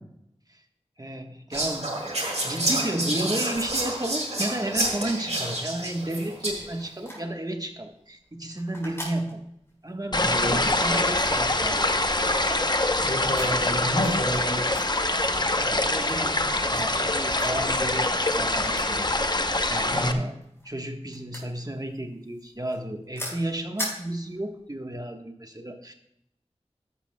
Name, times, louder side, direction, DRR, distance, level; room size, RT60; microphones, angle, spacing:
voice 1, 1.0-1.9 2.4-9.4 9.8-11.9 15.1-19.1 19.7-20.3 20.6-25.9, right 1 dB, 35° right, 4 dB, 1.2 m, -33 dB
Whispering, 1.5-6.8, right 1 dB, 70° right, 2.2 m, -29 dB
sound 1, 5.7-24.8, equal, 20° left, 4.7 m, -43 dB
voice 2, 10.1-10.6 13.0-14.6 19.9-20.2, equal, 75° left, -8 dB, 4.6 m, -29 dB
sound 2, 10.1-20.1, left 2 dB, 40° left, 0.8 m, -24 dB
14.0 x 11.0 x 2.2 m, 0.77 s
wide cardioid pair, 45°, 12 cm